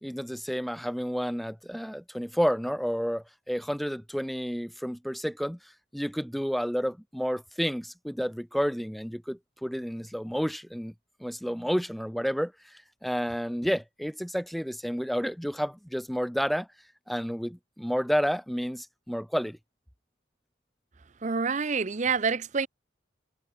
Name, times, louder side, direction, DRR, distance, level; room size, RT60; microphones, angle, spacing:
voice 1, 0.0-5.6 5.9-10.9 11.2-12.5 13.0-16.7 17.1-19.6, equal, ahead, 1.2 m, -30 dB
voice 2, 21.2-22.7, right 5 dB, 40° right, 0.7 m, -27 dB
head